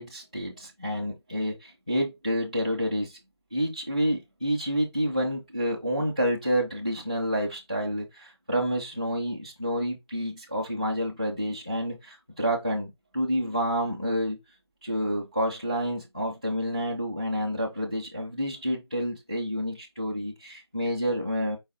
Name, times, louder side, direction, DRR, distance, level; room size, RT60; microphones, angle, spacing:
voice 1, 0.0-3.2 3.5-14.4 14.8-21.6, equal, 15° right, 0.4 m, -29 dB
4.6 x 2.5 x 4.3 m
figure-of-eight pair, 170°, 14 cm